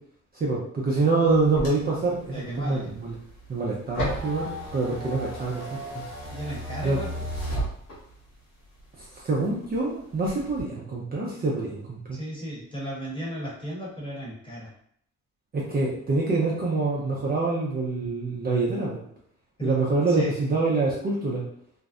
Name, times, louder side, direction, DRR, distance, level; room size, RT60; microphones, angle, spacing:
voice 1, 0.3-3.1 3.5-6.0 6.8-7.0 9.0-12.2 15.5-19.0 19.6-21.4, right 3 dB, 30° right, -4 dB, 0.5 m, -26 dB
sound 1, 1.3-8.3 8.8-9.8 10.1-10.6, equal, 90° left, 1.2 m, -34 dB
voice 2, 2.3-2.8 6.3-7.1 12.1-14.7 19.6-19.7 20.0-20.3, equal, 15° left, -5 dB, 1.0 m, -34 dB
2.5 x 2.0 x 2.4 m, 0.66 s
cardioid pair, 90°, 30 cm